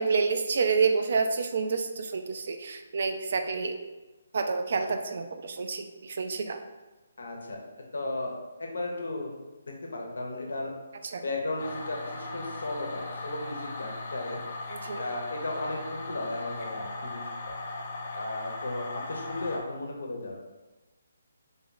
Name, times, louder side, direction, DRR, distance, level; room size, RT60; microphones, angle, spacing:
voice 1, 0.0-3.8 4.3-6.6 11.0-11.2 14.7-15.1, right 5 dB, 55° right, 6 dB, 0.4 m, -28 dB
voice 2, 7.2-7.6 7.9-9.3 9.9-10.8 11.2-14.4 15.0-17.6 18.2-20.4, left 2 dB, 75° left, 0 dB, 0.9 m, -35 dB
sound 1, 11.6-19.6, left 2 dB, 45° left, 0.7 m, -38 dB
3.5 x 2.9 x 3.8 m, 1.1 s
figure-of-eight pair, 150°, 0 cm